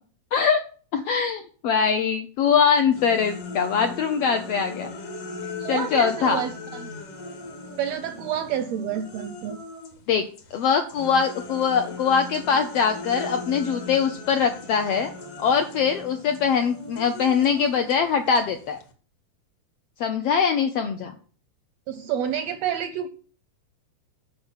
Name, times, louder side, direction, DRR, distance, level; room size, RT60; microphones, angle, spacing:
voice 1, 0.3-0.6 0.9-4.9 5.7-6.4 10.1-10.2 10.5-15.1 15.4-18.8 20.0-21.1, left 6 dB, 80° left, 6 dB, 1.4 m, -22 dB
sound 1, 2.9-10.0 10.3-18.9, left 3 dB, 55° left, 2.3 m, -39 dB
voice 2, 5.6-6.9 7.8-9.6 21.9-23.1, right 9 dB, 80° right, 10 dB, 1.5 m, -29 dB
8.9 x 5.1 x 7.2 m, 0.42 s
omnidirectional pair, 3.6 m